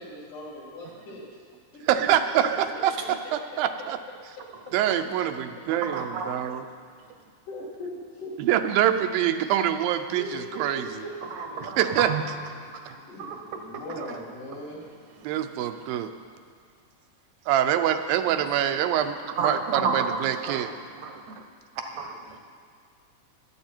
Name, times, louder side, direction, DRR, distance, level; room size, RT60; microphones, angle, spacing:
voice 1, 0.0-1.4 1.7-1.8 3.5-3.9 4.4-4.7 6.2-6.5 7.5-8.3 10.2-11.1 11.5-11.6 13.1-14.8, left 1 dB, 65° left, -8 dB, 3.6 m, -40 dB
voice 2, 1.9-2.9 3.3-4.0 4.7-6.6 8.4-10.9 11.8-12.1 15.2-16.1 17.5-20.7, right 10 dB, 85° right, 8 dB, 2.5 m, -25 dB
voice 3, 5.9-6.3 11.4-12.4 12.8-13.4 16.0-16.1 19.4-21.3 21.9-22.4, right 4 dB, 70° right, 5 dB, 1.8 m, -31 dB
24.5 x 8.5 x 4.4 m, 2.2 s
omnidirectional pair, 4.1 m